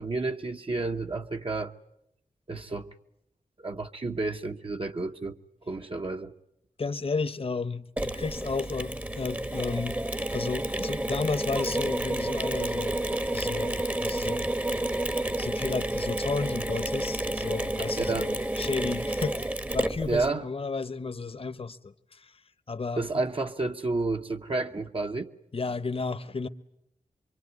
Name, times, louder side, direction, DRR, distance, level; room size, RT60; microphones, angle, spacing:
voice 1, 0.0-1.7 2.5-2.9 3.6-5.4 5.7-6.3 17.9-18.3 20.1-20.4 23.0-25.3, right 3 dB, 40° right, 1.0 m, -30 dB
voice 2, 6.8-10.0 10.3-13.1 13.3-14.5 15.4-19.4 19.7-22.4 22.7-23.0 25.5-26.5, left 4 dB, 45° left, 1.0 m, -33 dB
Mechanisms, 8.0-20.3, right 1 dB, 10° right, 1.0 m, -30 dB
25.5 x 24.0 x 9.5 m
wide cardioid pair, 100°, 14 cm